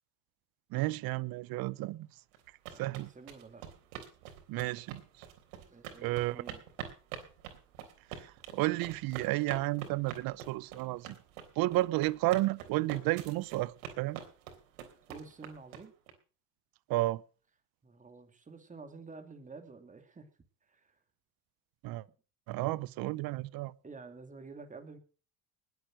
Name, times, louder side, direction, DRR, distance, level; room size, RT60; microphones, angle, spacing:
voice 1, 0.7-2.1 2.8-3.1 4.5-5.2 6.0-6.4 8.2-11.2 11.6-14.2 16.9-17.2 21.8-22.0 22.5-23.7, right 19 dB, 60° right, 0.8 m, -32 dB
sound 1, 2.3-16.1, right 9 dB, 85° right, 3.5 m, -45 dB
voice 2, 2.7-3.6 5.7-6.6 15.1-15.9 17.8-20.3 20.6-21.0 23.8-25.0, right 4 dB, 20° right, 2.7 m, -50 dB
20.0 x 8.1 x 6.2 m
supercardioid pair, 110°, 40 cm